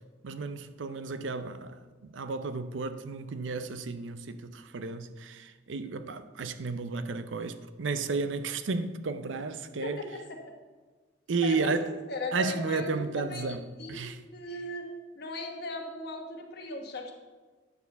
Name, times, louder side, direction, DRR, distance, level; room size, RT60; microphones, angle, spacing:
voice 1, 0.2-10.0 11.3-11.9 12.3-14.2, right 4 dB, 75° right, 0.5 m, -33 dB
voice 2, 9.8-10.4 11.4-11.7 12.1-14.1 14.3-14.9 15.1-17.1, left 2 dB, 55° left, 1.2 m, -38 dB
9.4 x 4.3 x 6.7 m
head